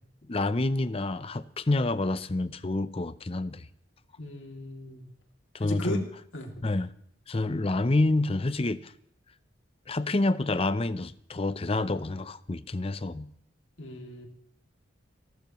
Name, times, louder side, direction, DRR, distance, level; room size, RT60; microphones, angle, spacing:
voice 1, 0.3-3.7 5.5-6.1 6.6-6.9 7.3-8.9 9.9-13.3, left 2 dB, 30° left, 0.6 m, -28 dB
voice 2, 4.2-5.1 5.6-6.0 6.3-6.5 13.8-14.3, equal, 75° left, 2.6 m, -36 dB
29.0 x 12.0 x 3.1 m
head